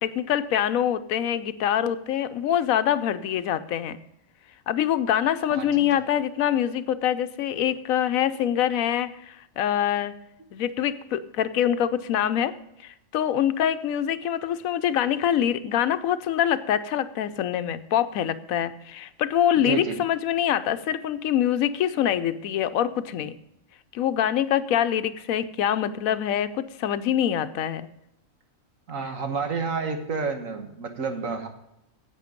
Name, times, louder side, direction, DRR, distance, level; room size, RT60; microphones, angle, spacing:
voice 1, 0.0-4.0 4.7-10.1 10.5-12.5 12.8-23.3 23.9-27.9, left 10 dB, 85° left, 12 dB, 1.1 m, -25 dB
voice 2, 5.5-5.9 10.4-10.5 19.7-20.0 28.9-31.5, right 4 dB, 75° right, 5 dB, 1.7 m, -30 dB
11.0 x 8.2 x 5.1 m, 0.80 s
omnidirectional pair, 1.4 m